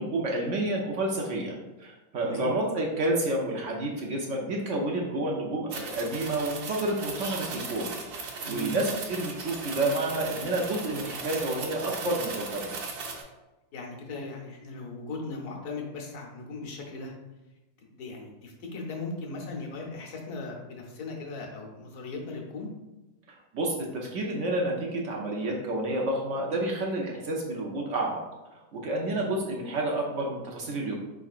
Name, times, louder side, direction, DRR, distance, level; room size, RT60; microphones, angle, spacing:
voice 1, 0.0-12.8 23.5-28.2 28.7-31.0, right 2 dB, 60° right, -1 dB, 0.9 m, -30 dB
voice 2, 2.2-2.5 8.4-8.7 13.7-17.1 17.9-22.7 29.0-29.2, left 3 dB, 80° left, 0 dB, 1.3 m, -38 dB
sound 1, 5.7-13.2, right 4 dB, 80° right, 1.3 m, -37 dB
4.6 x 3.7 x 2.4 m, 1.0 s
omnidirectional pair, 1.6 m